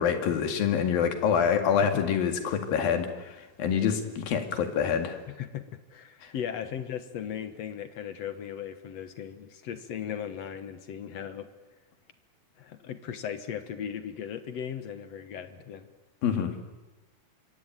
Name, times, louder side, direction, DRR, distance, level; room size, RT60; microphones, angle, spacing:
voice 1, 0.0-5.2 16.2-16.5, left 7 dB, 85° left, 7 dB, 4.0 m, -26 dB
voice 2, 5.3-11.5 12.6-15.9, left 8 dB, 60° left, 10 dB, 2.1 m, -37 dB
26.0 x 23.5 x 9.1 m, 1.1 s
omnidirectional pair, 4.0 m